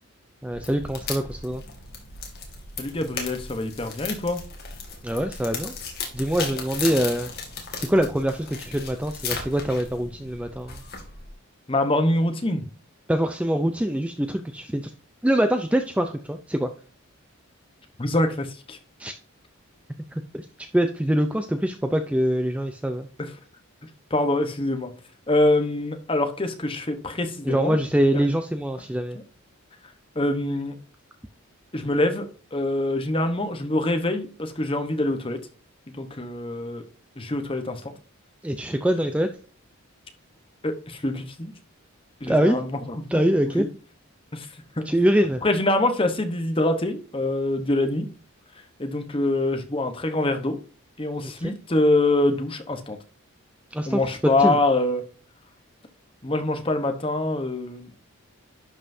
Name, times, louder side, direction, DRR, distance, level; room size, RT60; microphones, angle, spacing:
voice 1, 0.4-1.6 5.0-5.7 6.1-7.3 7.7-10.8 13.1-14.9 15.2-16.7 19.0-19.1 20.1-23.1 27.5-29.2 38.4-39.3 42.3-42.6 43.1-43.7 44.9-45.4 51.2-51.5 53.7-54.6, right 1 dB, 5° right, 7 dB, 0.4 m, -24 dB
sound 1, 0.5-11.3, left 5 dB, 45° left, 2.1 m, -36 dB
voice 2, 2.8-4.4 11.7-12.6 18.0-18.8 23.2-23.3 24.1-24.9 25.3-27.8 28.1-28.2 30.1-30.7 31.7-32.3 32.5-35.4 36.0-36.8 37.2-37.9 40.6-41.5 42.2-43.2 43.6-43.7 44.3-44.5 44.8-44.9 45.4-48.1 48.8-50.6 51.0-53.0 53.9-55.0 56.2-58.1, left 2 dB, 25° left, 6 dB, 1.0 m, -25 dB
11.0 x 5.5 x 2.7 m, 0.40 s
head